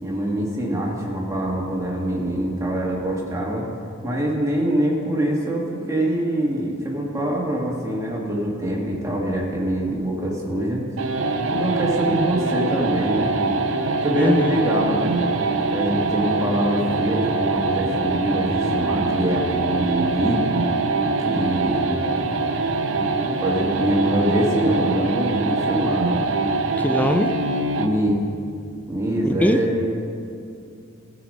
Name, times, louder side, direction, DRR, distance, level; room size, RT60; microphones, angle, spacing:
voice 1, 0.0-3.7 4.0-10.8 11.5-13.3 14.0-15.2 15.7-20.4 21.2-21.8 23.2-26.2 27.8-28.2 28.9-30.0, right 1 dB, 15° right, -2 dB, 1.6 m, -24 dB
sound 1, 11.0-28.0, right 3 dB, 65° right, 0.6 m, -23 dB
voice 2, 14.2-14.6 26.8-27.3 29.2-29.6, left 1 dB, 10° left, 8 dB, 0.4 m, -21 dB
15.0 x 5.1 x 5.3 m, 2.5 s
head